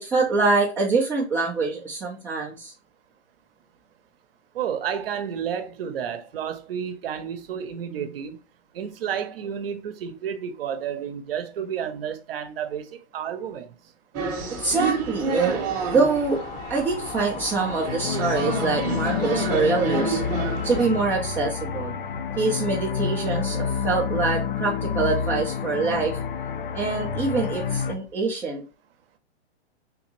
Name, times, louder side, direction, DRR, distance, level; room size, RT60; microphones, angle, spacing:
voice 1, 0.0-2.7 14.5-16.4 16.7-20.2 20.6-21.9 22.4-26.2 26.7-28.6, right 4 dB, 5° right, 0.4 m, -24 dB
voice 2, 4.5-8.4 8.7-13.7, right 8 dB, 60° right, 0.8 m, -31 dB
sound 1, 14.1-20.8, right 5 dB, 25° right, 0.8 m, -29 dB
sound 2, 16.3-28.0, left 7 dB, 50° left, 0.6 m, -29 dB
3.6 x 2.5 x 3.0 m
hypercardioid pair, 140°, 34 cm